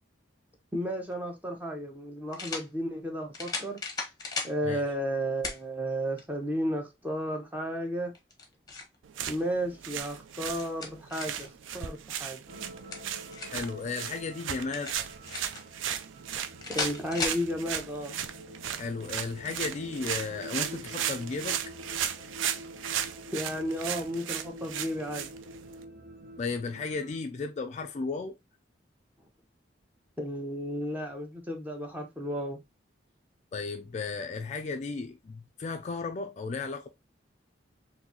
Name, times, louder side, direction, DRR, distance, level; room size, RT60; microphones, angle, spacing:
voice 1, 0.7-3.8 4.4-8.1 9.3-11.5 11.7-12.4 16.7-18.2 23.3-25.3 30.2-32.6, equal, 10° right, 0.8 m, -33 dB
sound 1, 1.1-1.2 2.3-2.7 3.3-4.6 5.4-5.6 6.2-6.3 8.1-9.0 10.3-11.5 12.7-13.7 14.7-15.6 16.6-17.4, left 4 dB, 20° left, 0.9 m, -36 dB
sound 2, 9.0-25.8, right 9 dB, 90° right, 0.4 m, -36 dB
sound 3, 12.5-27.2, right 1 dB, 50° right, 0.9 m, -47 dB
voice 2, 13.5-14.9 18.8-21.6 26.4-28.4 33.5-36.9, left 4 dB, 35° left, 0.3 m, -34 dB
3.9 x 2.6 x 2.7 m
head